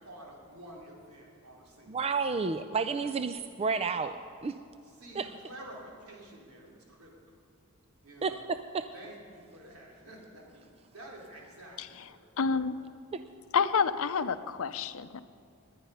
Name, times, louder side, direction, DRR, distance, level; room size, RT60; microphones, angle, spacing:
voice 1, 0.0-2.0 3.0-3.3 4.8-7.2 8.0-8.4 8.9-12.3, right 1 dB, 75° right, -2 dB, 3.6 m, -50 dB
voice 2, 1.9-4.2 4.4-4.5 5.2-5.3 8.2-8.8 13.1-13.2, right 5 dB, 25° right, 10 dB, 0.4 m, -31 dB
voice 3, 12.4-12.7 13.5-15.2, left 5 dB, 65° left, 12 dB, 0.6 m, -28 dB
21.0 x 10.0 x 5.6 m, 2.3 s
head